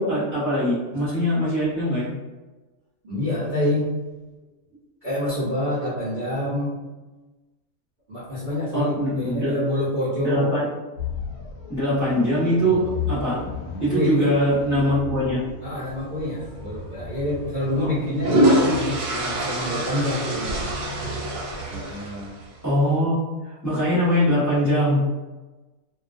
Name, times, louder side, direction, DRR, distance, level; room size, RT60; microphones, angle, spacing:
voice 1, 0.0-2.1 8.7-9.5 10.2-10.6 11.7-13.4 13.8-15.4 17.7-18.3 22.6-23.2 23.4-25.0, equal, 15° left, -11 dB, 0.7 m, -22 dB
voice 2, 3.0-4.0 5.0-6.8 8.1-10.6 13.9-14.3 15.6-20.6 21.7-22.3, left 1 dB, 45° right, -11 dB, 0.7 m, -27 dB
sound 1, 11.0-18.1, left 5 dB, 50° left, 0.8 m, -34 dB
sound 2, 16.5-16.7 17.9-22.5, right 1 dB, 85° right, 1.1 m, -24 dB
2.3 x 2.3 x 2.4 m, 1.2 s
omnidirectional pair, 1.5 m